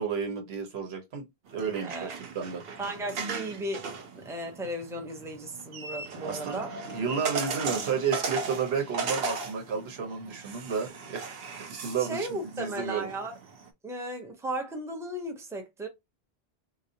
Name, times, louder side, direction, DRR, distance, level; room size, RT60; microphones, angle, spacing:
voice 1, 0.0-2.6 6.2-6.6 6.9-11.3 11.7-13.1, right 6 dB, 90° right, 1.2 m, -32 dB
sound 1, 1.5-13.7, right 4 dB, 70° right, 0.9 m, -37 dB
voice 2, 1.8-2.2 2.8-3.9 4.1-6.9 12.0-13.4 13.8-15.9, right 1 dB, 5° right, 0.6 m, -35 dB
3.9 x 2.3 x 2.7 m
omnidirectional pair, 1.0 m